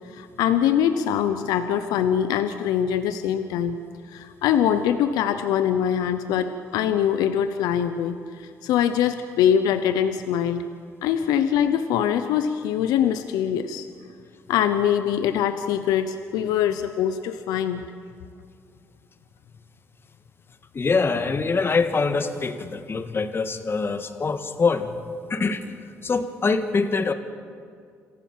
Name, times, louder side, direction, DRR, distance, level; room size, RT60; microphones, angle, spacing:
voice 1, 0.1-3.8 4.1-10.6 11.0-13.9 14.5-17.8, left 9 dB, 90° left, 9 dB, 0.8 m, -23 dB
voice 2, 20.7-25.0 25.3-25.6 26.0-27.1, left 4 dB, 35° left, 8 dB, 1.8 m, -24 dB
27.5 x 15.0 x 7.5 m, 2.2 s
supercardioid pair, 70°, 6 cm